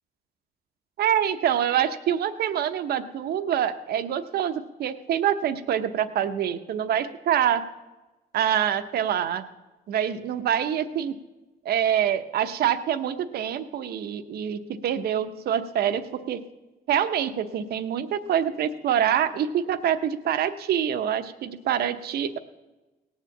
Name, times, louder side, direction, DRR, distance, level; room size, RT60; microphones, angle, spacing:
voice 1, 1.0-7.6 8.3-9.4 9.9-11.2 11.6-16.4 16.9-22.4, right 9 dB, 65° right, 10 dB, 0.9 m, -25 dB
18.0 x 7.4 x 7.2 m, 1.1 s
cardioid pair, 115°, 17 cm